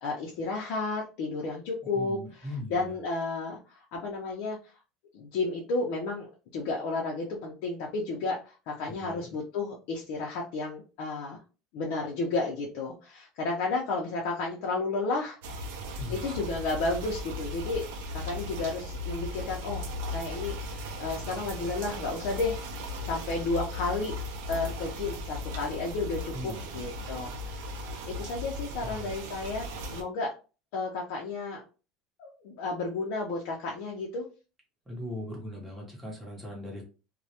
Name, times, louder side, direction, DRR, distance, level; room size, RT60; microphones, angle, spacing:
voice 1, 0.0-4.6 5.1-11.4 11.7-15.4 16.1-17.8 18.1-19.8 20.1-22.6 23.1-24.2 24.5-27.7 28.1-30.3 30.7-31.6 32.2-34.2, left 3 dB, 60° left, -2 dB, 0.5 m, -32 dB
voice 2, 2.0-3.0 8.8-9.2 16.0-16.3 26.3-26.8 28.8-29.1 34.9-36.8, left 1 dB, 5° right, -2 dB, 0.7 m, -39 dB
Light Rain, 15.4-30.0, left 1 dB, 90° right, 0.5 m, -37 dB
2.2 x 2.0 x 2.7 m, 0.34 s
cardioid pair, 170°, 0 cm